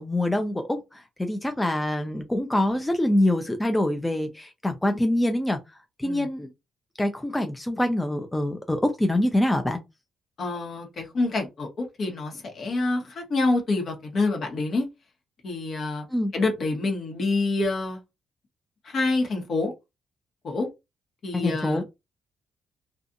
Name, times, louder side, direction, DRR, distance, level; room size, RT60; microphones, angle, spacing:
voice 1, 0.0-5.6 6.0-6.5 7.0-9.8 16.1-16.3 21.3-21.8, left 1 dB, 15° left, 0.5 m, -25 dB
voice 2, 10.4-14.9 15.4-16.0 16.3-18.0 18.8-19.7 20.4-20.7 21.2-21.9, left 3 dB, 55° left, 1.1 m, -27 dB
2.5 x 2.4 x 2.6 m
hypercardioid pair, 50°, 0 cm